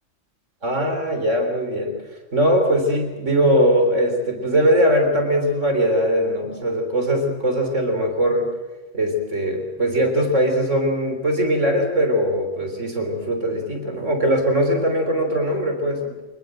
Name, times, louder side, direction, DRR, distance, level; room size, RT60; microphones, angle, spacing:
voice 1, 0.6-1.9 2.3-8.5 8.9-16.1, equal, 75° right, 4 dB, 4.0 m, -20 dB
24.5 x 20.5 x 7.8 m, 1.2 s
omnidirectional pair, 1.3 m